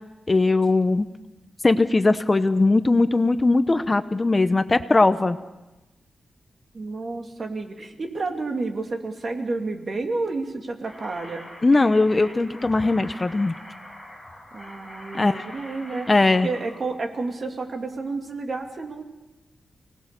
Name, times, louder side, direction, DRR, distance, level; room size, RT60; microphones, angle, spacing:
voice 1, 0.3-1.1 1.6-5.4 11.6-13.5 15.1-15.4 16.1-16.5, left 3 dB, 25° left, 11 dB, 0.8 m, -19 dB
voice 2, 6.7-11.5 14.5-16.1 16.4-19.0, right 3 dB, 45° right, 4 dB, 2.6 m, -30 dB
sound 1, 10.8-16.8, left 1 dB, 5° right, 7.0 m, -43 dB
29.5 x 19.0 x 6.8 m, 1.0 s
wide cardioid pair, 125°, 0 cm